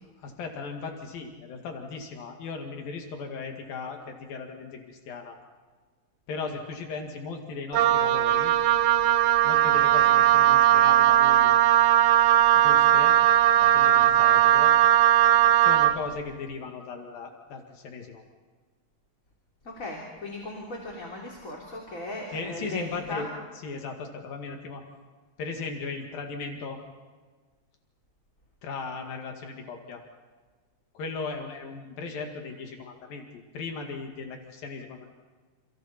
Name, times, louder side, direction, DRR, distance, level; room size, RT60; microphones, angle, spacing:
voice 1, 0.0-5.4 6.3-8.5 9.4-11.5 12.5-13.2 13.6-14.8 15.6-18.2 22.3-23.3 23.6-24.8 25.4-26.8 28.6-30.0 30.9-35.1, left 4 dB, 80° left, 2 dB, 4.0 m, -37 dB
Wind instrument woodwind instrument, 7.7-16.0, right 12 dB, 75° right, 2.6 m, -19 dB
voice 2, 19.6-23.2, left 1 dB, 20° left, -2 dB, 3.7 m, -37 dB
30.0 x 29.5 x 4.3 m, 1.4 s
omnidirectional pair, 4.0 m